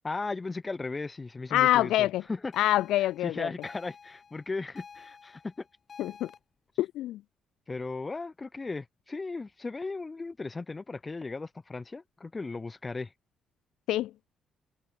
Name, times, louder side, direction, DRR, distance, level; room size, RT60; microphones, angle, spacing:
voice 1, 0.0-2.5 3.2-5.6 7.7-13.1, left 3 dB, 25° left, 2.6 m, -36 dB
voice 2, 1.5-2.2 2.6-3.5 6.0-6.3 6.8-7.2 13.9-14.1, left 14 dB, 85° left, 0.8 m, -25 dB
sound 1, 2.5-6.4, left 6 dB, 40° left, 5.5 m, -51 dB
cardioid pair, 90°, 0 cm